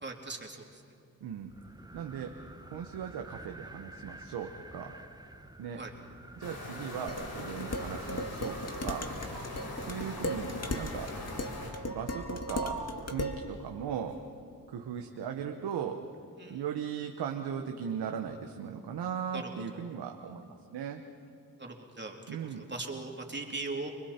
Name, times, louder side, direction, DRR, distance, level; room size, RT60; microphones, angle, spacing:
voice 1, 0.0-0.8 5.8-5.9 16.4-16.6 19.3-19.8 21.6-23.9, right 3 dB, 30° right, 1 dB, 3.4 m, -40 dB
voice 2, 1.2-1.5 1.9-2.4 2.7-5.0 5.6-5.8 6.4-9.1 9.9-11.1 11.9-14.2 14.7-16.0 16.5-21.0 22.3-22.6, right 8 dB, 90° right, 4 dB, 1.1 m, -38 dB
sound 1, 1.3-13.4, right 2 dB, 10° right, 1.4 m, -48 dB
sound 2, 6.4-11.7, left 2 dB, 70° left, 4.5 m, -42 dB
Dishes pots and pans, 7.1-13.4, left 1 dB, 40° left, 2.1 m, -37 dB
30.0 x 21.0 x 4.4 m, 2.4 s
supercardioid pair, 50°, 38 cm